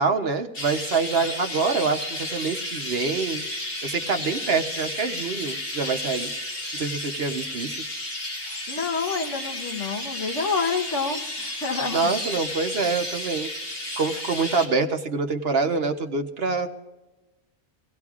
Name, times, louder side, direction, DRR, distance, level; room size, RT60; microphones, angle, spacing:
voice 1, 0.0-3.4 3.8-6.3 6.7-7.8 11.9-13.5 14.0-16.7, right 4 dB, 55° right, 6 dB, 1.0 m, -25 dB
Chirp tweet, 0.5-14.7, left 1 dB, 85° left, 3.2 m, -32 dB
voice 2, 8.7-12.0, left 4 dB, 70° left, 4 dB, 1.4 m, -28 dB
23.5 x 17.0 x 2.4 m, 1.1 s
omnidirectional pair, 1.3 m